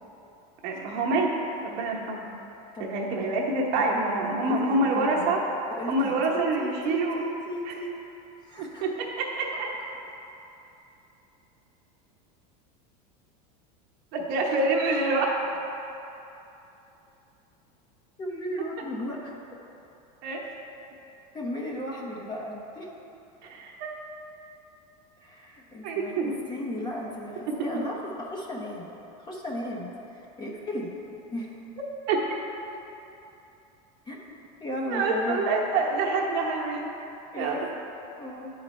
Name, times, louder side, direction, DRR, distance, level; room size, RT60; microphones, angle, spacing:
voice 1, 0.6-1.3 1.6-2.2 2.8-5.4 5.9-7.2 8.6-9.7 14.1-15.3 20.2-20.4 23.4-24.0 25.8-26.3 27.5-27.9 32.1-32.2 34.9-37.0 37.4-37.7, right 2 dB, 55° right, -2 dB, 1.1 m, -26 dB
voice 2, 3.8-5.3 5.7-7.9 8.4-8.9 18.2-19.4 21.3-22.9 25.2-28.9 29.2-30.9 31.3-31.5 34.1-35.5 37.3-37.6 38.2-38.5, equal, 20° left, -3 dB, 1.1 m, -35 dB
9.5 x 3.9 x 4.4 m, 2.9 s
supercardioid pair, 135°, 21 cm